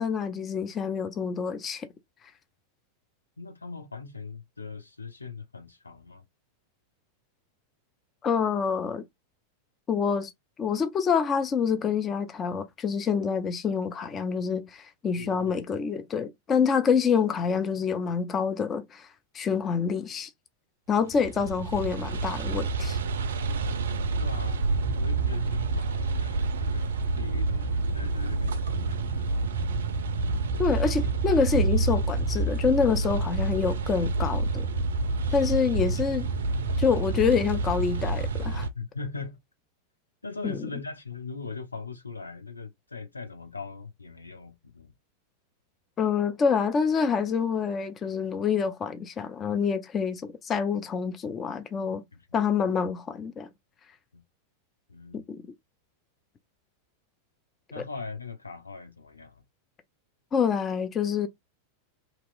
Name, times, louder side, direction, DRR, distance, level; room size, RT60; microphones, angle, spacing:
voice 1, 0.0-1.9 8.2-9.1 9.9-10.3 10.6-19.1 19.3-20.3 20.9-23.0 30.6-34.7 35.3-36.3 36.8-38.7 40.4-40.6 46.0-52.0 52.3-53.5 55.1-55.4 60.3-61.3, left 6 dB, 25° left, 0.4 m, -27 dB
voice 2, 3.4-6.2 15.2-15.6 24.2-24.6 24.9-29.5 38.7-39.4 40.2-44.9 52.3-52.5 54.1-54.2 54.9-55.4 57.7-59.4, left 4 dB, 80° left, 0.7 m, -40 dB
sound 1, 21.0-38.7, right 3 dB, 65° right, 0.4 m, -28 dB
2.9 x 2.9 x 2.5 m
figure-of-eight pair, 90°, 0 cm